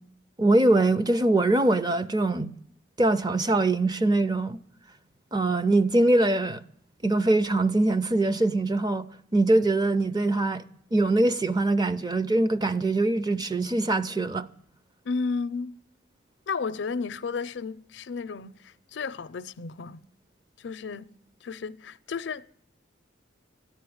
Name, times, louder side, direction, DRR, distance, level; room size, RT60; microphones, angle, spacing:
voice 1, 0.4-2.5 3.0-4.6 5.3-6.6 7.0-9.1 9.3-10.6 10.9-14.5, right 2 dB, 20° right, 0.5 m, -23 dB
voice 2, 15.0-15.7 16.5-20.0 20.6-21.1 21.4-22.4, left 4 dB, 70° left, 0.5 m, -33 dB
14.0 x 9.7 x 8.6 m
head